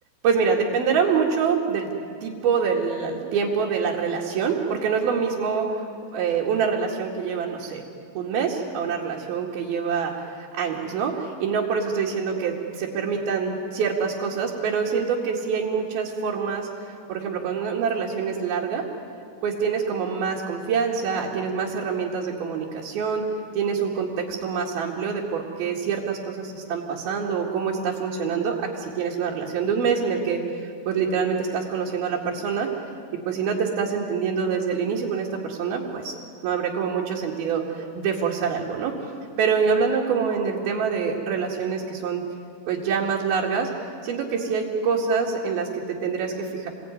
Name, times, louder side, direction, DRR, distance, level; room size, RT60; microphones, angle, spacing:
voice 1, 0.2-1.9 2.2-7.8 8.2-16.7 17.1-18.8 19.4-23.2 23.5-32.7 33.3-36.1 36.4-39.0 39.4-42.2 42.7-43.7 44.0-46.7, right 6 dB, 75° right, -3 dB, 3.9 m, -25 dB
28.5 x 21.5 x 9.7 m, 2.4 s
omnidirectional pair, 4.4 m